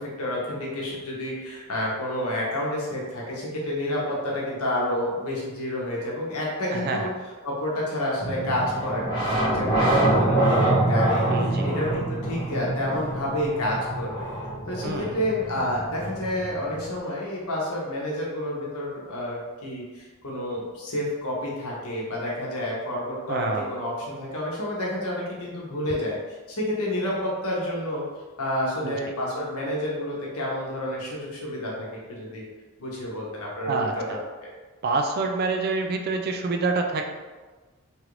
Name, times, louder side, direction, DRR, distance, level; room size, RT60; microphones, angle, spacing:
voice 1, 0.0-7.1 7.4-9.2 9.4-14.3 14.7-26.2 26.5-28.0 28.4-32.4 32.8-34.2, left 1 dB, 90° left, -4 dB, 0.9 m, -29 dB
voice 2, 6.7-7.0 11.3-11.7 14.8-15.2 23.3-23.7 28.8-29.0 33.6-34.2 34.8-37.0, right 3 dB, 45° right, 3 dB, 0.3 m, -27 dB
sound 1, 8.2-17.0, right 1 dB, 20° left, 1.1 m, -25 dB
3.0 x 2.5 x 3.1 m, 1.3 s
head